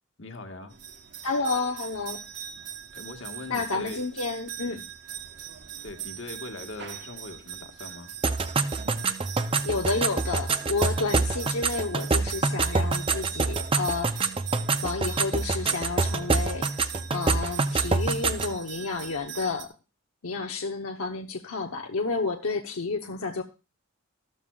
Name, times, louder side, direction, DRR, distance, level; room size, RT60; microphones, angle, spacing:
voice 1, 0.2-0.7 2.9-4.1 4.6-4.9 5.8-8.1, left 2 dB, 60° left, 5 dB, 1.5 m, -41 dB
sound 1, 0.7-19.6, right 9 dB, 55° right, 1.1 m, -41 dB
voice 2, 1.2-2.2 3.5-4.8 9.6-14.4 14.8-16.8 17.1-19.7 20.2-23.4, left 3 dB, 80° left, 3 dB, 0.9 m, -30 dB
sound 2, 8.2-18.6, right 3 dB, 25° right, 0.6 m, -26 dB
14.0 x 13.0 x 2.4 m, 0.30 s
head